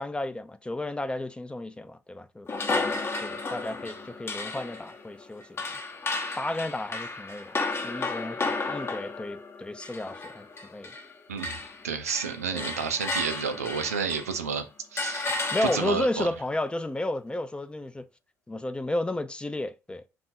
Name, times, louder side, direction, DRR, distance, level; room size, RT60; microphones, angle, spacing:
voice 1, 0.0-5.5 6.4-7.6 7.8-10.9 12.5-12.7 15.5-18.1 18.5-20.0, left 1 dB, 15° left, 0.4 m, -32 dB
sound 1, 2.5-11.1 11.4-14.4 15.0-16.2, left 3 dB, 30° left, 0.8 m, -33 dB
voice 2, 11.8-14.7 14.9-16.3, right 6 dB, 85° right, 0.4 m, -30 dB
3.6 x 2.4 x 4.2 m
figure-of-eight pair, 50°, 8 cm